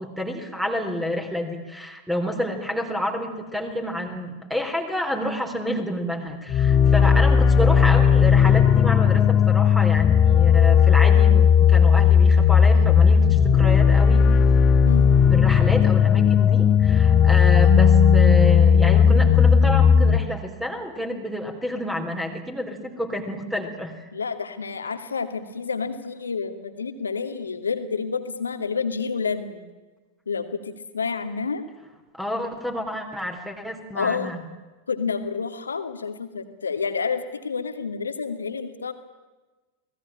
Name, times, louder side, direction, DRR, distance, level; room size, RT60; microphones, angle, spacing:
voice 1, 0.0-14.3 15.3-24.1 32.1-34.4, left 1 dB, 5° right, 4 dB, 3.7 m, -29 dB
sound 1, 6.5-20.2, left 7 dB, 30° left, 1.5 m, -16 dB
voice 2, 14.8-15.2 24.1-29.6 30.3-31.6 33.9-34.3 34.9-38.9, left 5 dB, 75° left, 8 dB, 2.5 m, -29 dB
Keyboard (musical), 17.6-20.4, equal, 55° right, 3.9 m, -27 dB
29.0 x 20.0 x 9.0 m, 1.2 s
figure-of-eight pair, 90°, 0 cm